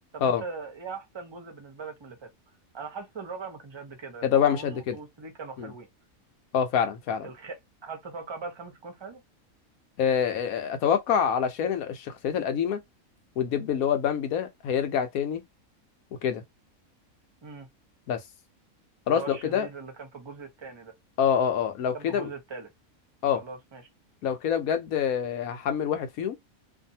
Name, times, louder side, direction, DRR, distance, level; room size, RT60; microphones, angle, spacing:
voice 1, 0.1-2.3 2.7-5.9 7.2-9.2 17.4-17.7 19.1-20.9 21.9-22.7 23.3-23.8, right 4 dB, 25° right, 0.7 m, -40 dB
voice 2, 4.2-5.0 5.6-5.7 6.5-7.3 10.0-12.8 13.4-15.4 16.2-16.4 18.1-18.2 19.1-19.7 21.2-22.3 23.2-23.4 24.2-26.4, left 8 dB, 85° left, 1.2 m, -26 dB
2.6 x 2.5 x 2.7 m
omnidirectional pair, 1.5 m